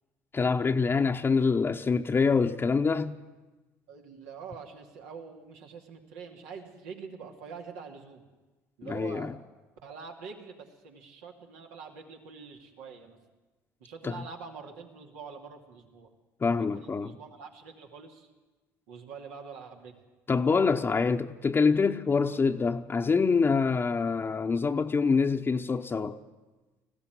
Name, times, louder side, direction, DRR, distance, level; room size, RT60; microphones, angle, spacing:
voice 1, 0.3-3.2 8.8-9.3 14.0-14.2 16.4-17.2 20.3-26.2, left 4 dB, 30° left, 0.9 m, -25 dB
voice 2, 3.9-8.2 8.8-9.3 9.8-13.2 13.8-16.1 16.6-18.3 18.9-19.9 22.3-22.5, right 5 dB, 80° right, 2.5 m, -45 dB
19.5 x 15.5 x 9.3 m
hypercardioid pair, 65°, 7 cm